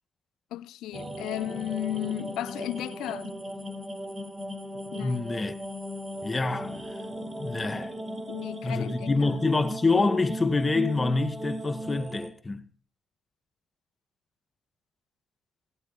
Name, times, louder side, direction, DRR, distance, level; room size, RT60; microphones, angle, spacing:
voice 1, 0.5-3.3 4.9-5.2 8.3-9.4, left 14 dB, 85° left, 0.9 m, -34 dB
sound 1, 0.9-12.3, equal, 25° right, 3.9 m, -37 dB
voice 2, 4.9-5.6 6.2-7.0 7.4-7.9 8.6-12.7, left 3 dB, 25° left, 1.8 m, -26 dB
19.0 x 16.5 x 4.2 m
cardioid pair, 90°, 0 cm